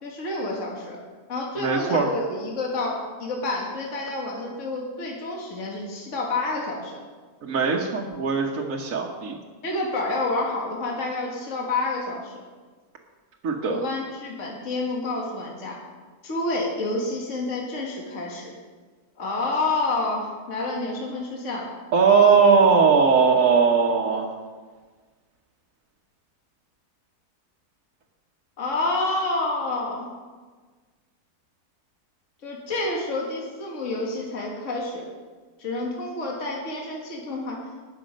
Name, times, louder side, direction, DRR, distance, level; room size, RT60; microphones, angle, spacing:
voice 1, 0.0-1.0 1.3-7.0 9.6-12.4 13.7-15.8 16.2-18.5 19.2-21.7 28.6-30.1 32.4-35.0 35.6-37.6, left 2 dB, 50° left, -1 dB, 2.0 m, -29 dB
voice 2, 1.6-2.1 7.4-9.4 13.4-13.8 21.9-24.3, right 5 dB, 55° right, -1 dB, 1.4 m, -19 dB
19.0 x 6.5 x 5.2 m, 1.4 s
omnidirectional pair, 1.7 m